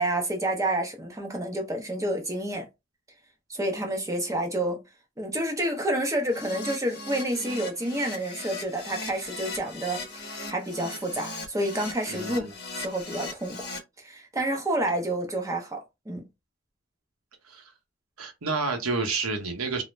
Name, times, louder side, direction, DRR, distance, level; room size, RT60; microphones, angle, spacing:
voice 1, 0.0-2.7 3.5-4.8 5.2-12.5 12.8-13.7 14.0-16.2, right 1 dB, 15° right, 0.5 m, -29 dB
Keyboard (musical), 6.3-13.8, left 3 dB, 50° left, 0.7 m, -38 dB
voice 2, 12.1-12.5 17.4-17.7 18.2-19.8, right 3 dB, 90° right, 0.9 m, -30 dB
2.4 x 2.0 x 3.0 m
head